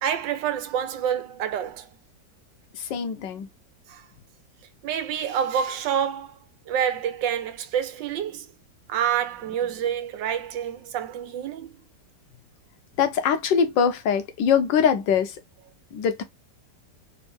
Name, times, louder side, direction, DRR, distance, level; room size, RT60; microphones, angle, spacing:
voice 1, 0.0-1.9 3.9-4.1 4.8-6.4 6.7-8.5 8.9-11.7, right 9 dB, 85° right, 1.4 m, -27 dB
voice 2, 2.7-3.5 13.0-15.4 15.9-16.2, left 7 dB, 80° left, 1.5 m, -23 dB
4.1 x 2.6 x 3.5 m
omnidirectional pair, 1.9 m